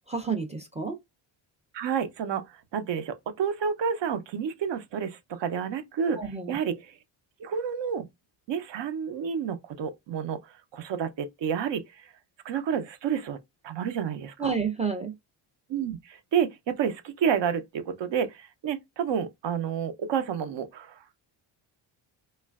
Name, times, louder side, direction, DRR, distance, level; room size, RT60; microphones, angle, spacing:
voice 1, 0.1-1.0 6.2-6.6 14.4-15.1, right 5 dB, 15° right, 0.4 m, -30 dB
voice 2, 1.7-2.4 2.7-6.2 6.5-7.0 7.4-8.1 8.5-10.4 10.7-11.8 12.4-13.4 13.6-14.5 15.7-20.9, right 7 dB, 60° right, 0.7 m, -29 dB
3.1 x 2.4 x 2.3 m
cardioid pair, 125°, 49 cm